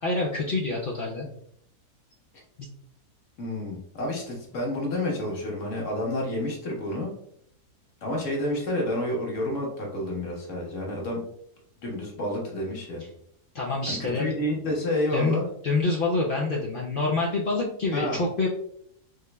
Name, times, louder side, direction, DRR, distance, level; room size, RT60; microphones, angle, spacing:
voice 1, 0.0-1.3 2.6-2.7 13.5-14.3 15.1-15.4 15.6-18.5, left 3 dB, 70° left, -3 dB, 0.5 m, -26 dB
voice 2, 3.4-7.1 8.0-11.2 11.8-13.0 13.9-15.4 17.9-18.2, left 1 dB, 50° left, -1 dB, 1.5 m, -29 dB
5.1 x 3.2 x 2.2 m, 0.67 s
omnidirectional pair, 1.7 m